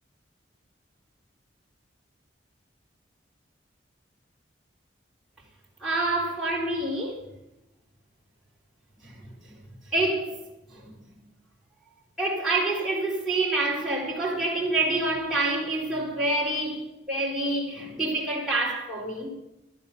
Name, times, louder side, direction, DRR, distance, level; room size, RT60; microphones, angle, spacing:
voice 1, 5.8-7.2 9.0-9.2 9.9-10.4 10.7-10.9 12.2-16.8 17.1-19.3, right 2 dB, ahead, 4.6 m, -27 dB
15.0 x 11.5 x 7.3 m
head